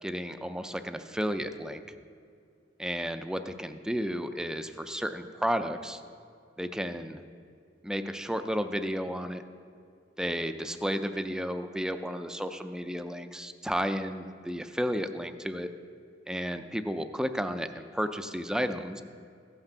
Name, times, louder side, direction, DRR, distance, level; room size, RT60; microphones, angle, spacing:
voice 1, 0.0-1.8 2.8-6.0 6.6-7.2 7.8-9.4 10.2-15.7 16.3-19.0, equal, 5° right, 9 dB, 0.4 m, -32 dB
15.5 x 5.9 x 6.7 m, 2.4 s
head